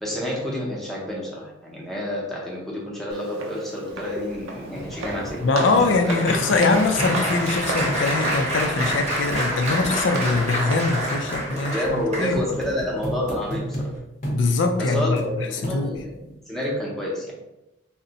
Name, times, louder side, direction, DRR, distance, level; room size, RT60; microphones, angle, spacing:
voice 1, 0.0-5.4 6.1-6.6 11.5-13.9 14.8-17.3, left 1 dB, ahead, -4 dB, 0.6 m, -29 dB
Walk footsteps, 3.1-11.1, right 2 dB, 90° right, 0.5 m, -35 dB
Applause, 4.3-12.6 13.3-13.5 13.8-14.0, equal, 35° right, 0.7 m, -28 dB
sound 1, 4.8-4.9 5.3-5.4 5.8-5.9 6.3-7.4 7.8-8.0 8.3-8.4 8.8-8.9 9.3-9.4 9.8-10.0 10.3-10.4 10.8-10.9 11.3-11.5 11.8-12.0 12.3-13.9 14.2-14.4 14.9-15.3 15.6-16.1 16.6-16.7, equal, 40° left, 0.7 m, -32 dB
voice 2, 5.4-12.4 14.3-15.5 15.7-16.0, left 3 dB, 75° left, 5 dB, 0.4 m, -22 dB
2.6 x 2.1 x 3.9 m, 0.95 s
head